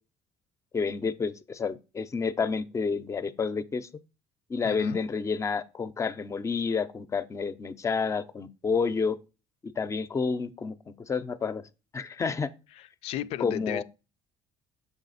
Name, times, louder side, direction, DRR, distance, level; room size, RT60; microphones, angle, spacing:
voice 1, 0.7-3.9 4.5-9.2 9.6-11.6 11.9-12.5 13.4-13.8, left 5 dB, 30° left, 0.6 m, -29 dB
voice 2, 4.6-5.0 12.7-13.8, left 12 dB, 75° left, 0.4 m, -35 dB
7.1 x 4.1 x 4.0 m
cardioid pair, 105°, 11 cm